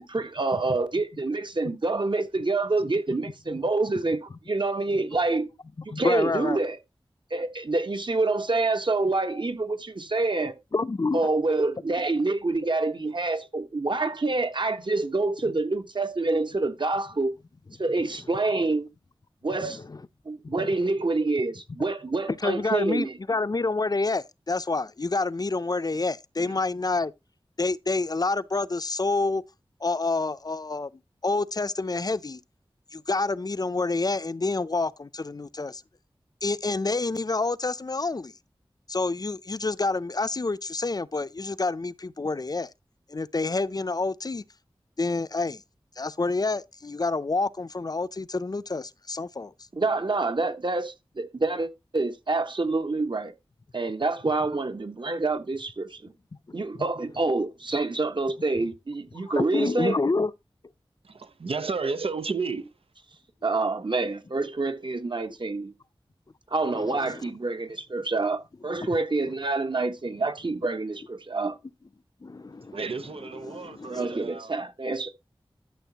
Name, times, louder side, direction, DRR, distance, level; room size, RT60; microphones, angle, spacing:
voice 1, 0.0-5.5 5.8-6.8 7.3-10.5 11.1-17.3 17.8-18.9 19.4-19.8 20.2-23.1 49.7-53.3 53.7-56.1 56.5-59.9 63.4-65.7 66.5-71.6 73.9-75.1, right 3 dB, 55° right, 1.4 m, -27 dB
voice 2, 5.9-6.6 10.7-11.2 19.6-20.0 20.4-20.7 22.3-27.1 27.6-29.4 29.8-30.9 31.2-32.4 32.9-35.8 36.4-38.4 38.9-42.7 43.1-44.4 45.0-45.6 46.0-49.5 56.5-56.6 59.2-60.3 66.6-67.3 68.8-68.9 72.2-72.8 73.5-74.1, left 3 dB, 45° left, 0.5 m, -28 dB
voice 3, 61.0-62.7 72.7-74.6, right 4 dB, 90° right, 0.8 m, -32 dB
12.5 x 7.0 x 2.9 m
wide cardioid pair, 60°, 9 cm